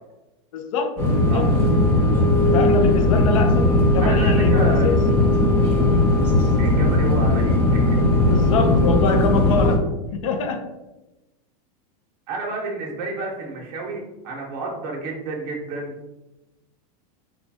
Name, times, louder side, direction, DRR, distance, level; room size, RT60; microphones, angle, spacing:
voice 1, 0.5-1.0 1.3-1.5 2.5-5.0 8.3-10.7, left 5 dB, 60° left, 6 dB, 0.4 m, -25 dB
sound 1, 1.0-9.8, left 1 dB, 10° left, 0.6 m, -18 dB
voice 2, 4.0-4.9 6.6-8.2 12.3-15.9, right 3 dB, 35° right, -2 dB, 0.8 m, -31 dB
3.3 x 2.3 x 4.0 m, 1.0 s
supercardioid pair, 180°, 19 cm